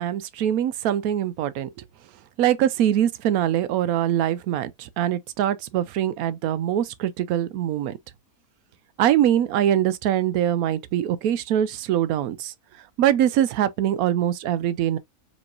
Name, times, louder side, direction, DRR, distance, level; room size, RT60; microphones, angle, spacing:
voice 1, 0.0-1.8 2.4-8.0 9.0-12.5 13.0-15.0, right 11 dB, 80° right, 1.0 m, -23 dB
4.1 x 3.1 x 2.4 m
omnidirectional pair, 1.5 m